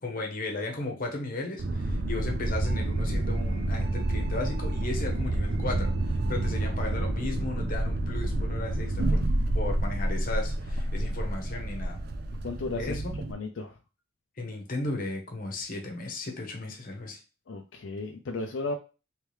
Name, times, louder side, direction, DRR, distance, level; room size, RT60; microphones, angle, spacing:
voice 1, 0.0-9.2 9.5-12.0 12.8-13.1 14.4-17.2, left 2 dB, 45° left, 2 dB, 1.0 m, -35 dB
sound 1, 1.6-13.3, right 1 dB, 55° right, 0.5 m, -29 dB
voice 2, 12.4-13.0 13.3-13.7 17.5-18.8, left 3 dB, 70° left, 3 dB, 0.4 m, -34 dB
3.2 x 3.2 x 3.1 m, 0.31 s
head